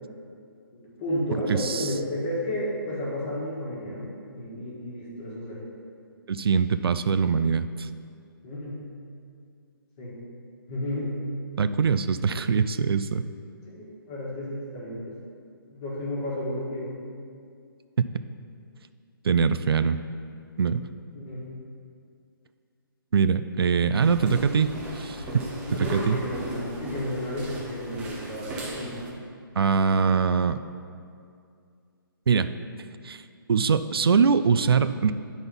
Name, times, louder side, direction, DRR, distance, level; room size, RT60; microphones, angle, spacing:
voice 1, 0.7-5.6 8.4-8.8 10.0-10.2 10.7-11.1 13.7-15.1 15.7-16.9 21.1-21.5 25.7-29.1, left 1 dB, 20° left, -5 dB, 1.5 m, -32 dB
voice 2, 1.6-1.9 6.3-7.9 11.6-13.2 19.2-20.0 20.6-20.9 23.1-25.2 25.8-26.2 29.6-30.6 32.3-32.5 33.0-33.2 33.5-35.1, right 6 dB, 85° right, 12 dB, 0.4 m, -23 dB
sound 1, 24.0-29.1, right 1 dB, 10° right, 0.5 m, -36 dB
9.8 x 4.1 x 5.3 m, 2.3 s
hypercardioid pair, 170°, 12 cm